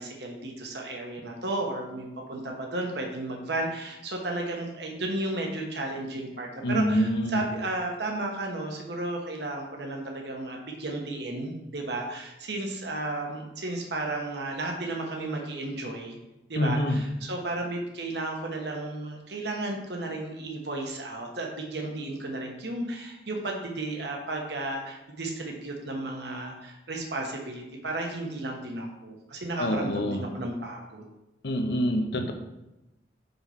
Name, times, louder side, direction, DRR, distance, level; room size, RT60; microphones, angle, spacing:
voice 1, 0.0-16.2 16.5-31.1, right 2 dB, 70° right, 1 dB, 1.1 m, -33 dB
voice 2, 6.6-7.4 16.6-17.0 29.6-30.2 31.4-32.3, equal, 70° left, 5 dB, 0.8 m, -26 dB
5.5 x 4.5 x 5.7 m, 0.97 s
head